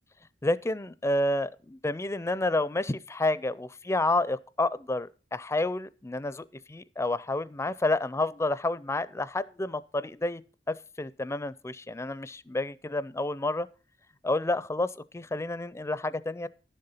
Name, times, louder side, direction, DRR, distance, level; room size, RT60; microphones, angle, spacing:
voice 1, 0.4-10.4 10.7-13.7 14.2-16.5, left 2 dB, 15° left, 0.4 m, -29 dB
11.5 x 6.8 x 5.6 m
head